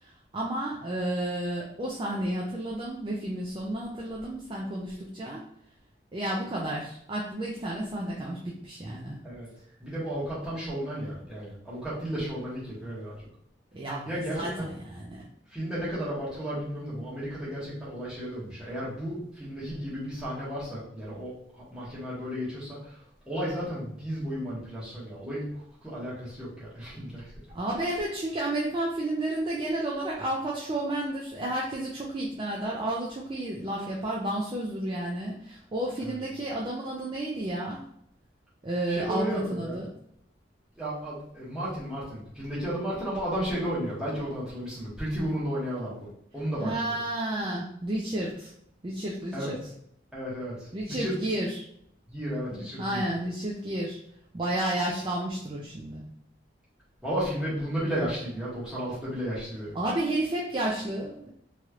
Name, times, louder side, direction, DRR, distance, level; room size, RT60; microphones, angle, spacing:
voice 1, 0.0-5.4 6.1-9.2 13.7-14.1 14.3-15.2 27.5-37.8 38.6-39.9 45.2-45.3 46.6-48.5 48.8-49.5 50.7-51.6 52.5-54.0 54.3-56.1 59.7-61.3, right 1 dB, 25° right, -3 dB, 0.4 m, -31 dB
voice 2, 9.8-13.1 14.0-14.7 15.5-23.0 23.3-25.5 25.8-27.3 36.0-36.2 38.9-39.8 40.8-46.1 46.3-46.9 49.3-49.5 50.1-51.2 52.1-53.0 57.0-59.8, equal, 5° right, -10 dB, 1.3 m, -33 dB
3.0 x 3.0 x 2.4 m, 0.71 s
head